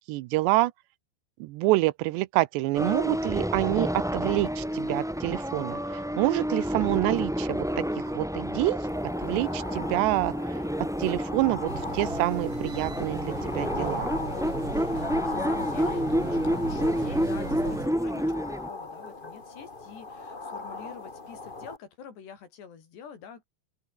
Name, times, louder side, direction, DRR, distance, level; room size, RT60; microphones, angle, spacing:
voice 1, 0.1-0.7 1.4-7.8 8.2-8.8 9.2-10.6 11.0-14.1, right 19 dB, 90° right, 3.0 m, -27 dB
sound 1, 2.7-18.7, equal, ahead, 1.0 m, -30 dB
sound 2, 8.9-21.8, left 3 dB, 50° left, 0.6 m, -38 dB
sound 3, 11.7-17.9, right 5 dB, 35° right, 3.7 m, -39 dB
voice 2, 15.3-23.4, left 7 dB, 75° left, 6.3 m, -46 dB
open air
omnidirectional pair, 4.9 m